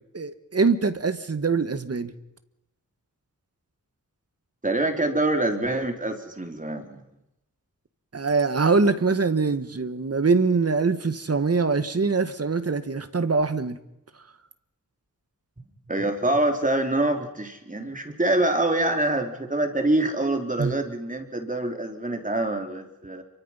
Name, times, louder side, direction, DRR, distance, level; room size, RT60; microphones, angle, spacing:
voice 1, 0.1-2.1 8.1-13.8 20.6-20.7, right 4 dB, 45° right, 10 dB, 1.7 m, -23 dB
voice 2, 4.6-7.0 15.9-23.2, right 2 dB, 25° right, 4 dB, 3.4 m, -25 dB
29.5 x 24.0 x 5.8 m, 0.91 s
wide cardioid pair, 95°, 34 cm